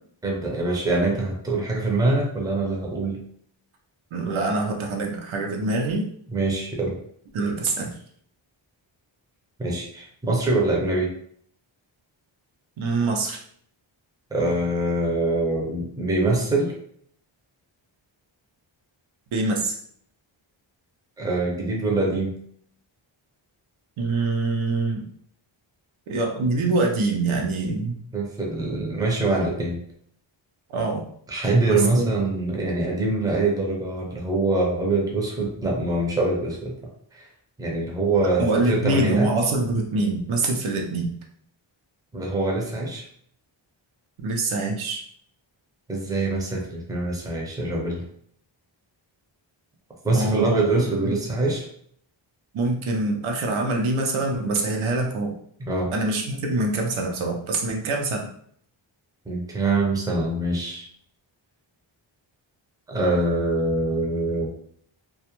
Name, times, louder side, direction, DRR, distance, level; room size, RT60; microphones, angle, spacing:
voice 1, 0.2-3.2 6.3-7.0 9.6-11.1 14.3-16.7 21.2-22.4 28.1-29.8 31.3-36.8 37.1-37.3 37.6-39.3 42.1-43.1 45.9-48.0 50.0-51.7 55.6-55.9 59.3-60.8 62.9-64.5, right 2 dB, 10° right, -1 dB, 0.5 m, -24 dB
voice 2, 4.1-6.1 7.3-7.9 12.8-13.4 19.3-19.8 24.0-25.0 26.1-28.0 30.7-31.0 31.6-32.1 38.4-41.1 44.2-45.0 50.1-50.7 51.0-51.2 52.5-55.3 55.9-58.3, right 2 dB, 80° right, 2 dB, 0.6 m, -24 dB
2.3 x 2.1 x 2.9 m, 0.63 s
wide cardioid pair, 130°, 48 cm